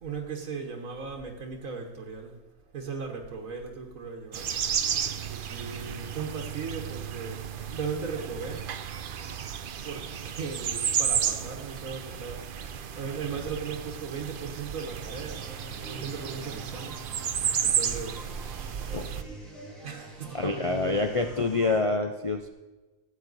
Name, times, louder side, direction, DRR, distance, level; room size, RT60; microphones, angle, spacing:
voice 1, 0.0-2.4 2.7-4.5 5.3-7.4 7.7-8.7 9.8-12.5 13.0-15.4 15.9-17.0 17.6-18.3 19.8-21.4, right 5 dB, 85° right, 1.6 m, -37 dB
sound 1, 4.3-19.2, right 8 dB, 55° right, 0.6 m, -33 dB
sound 2, 14.9-21.8, right 1 dB, ahead, 2.9 m, -46 dB
voice 2, 20.3-22.5, left 3 dB, 50° left, 0.3 m, -27 dB
14.5 x 8.3 x 4.0 m
omnidirectional pair, 1.4 m